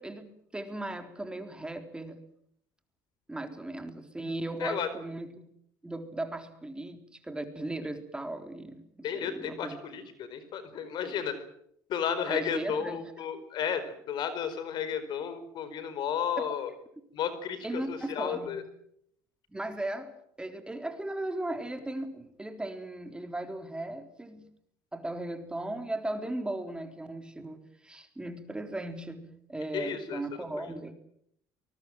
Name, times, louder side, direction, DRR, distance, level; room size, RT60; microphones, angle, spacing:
voice 1, 0.0-2.2 3.3-5.4 5.8-8.8 9.1-9.8 12.3-13.0 17.6-18.6 19.5-24.5 24.9-30.9, right 1 dB, 10° right, 7 dB, 3.8 m, -37 dB
voice 2, 9.0-11.4 11.9-16.7 17.1-18.6 29.7-30.7, left 8 dB, 60° left, 12 dB, 4.6 m, -33 dB
24.0 x 21.0 x 7.7 m, 0.70 s
supercardioid pair, 80°, 9 cm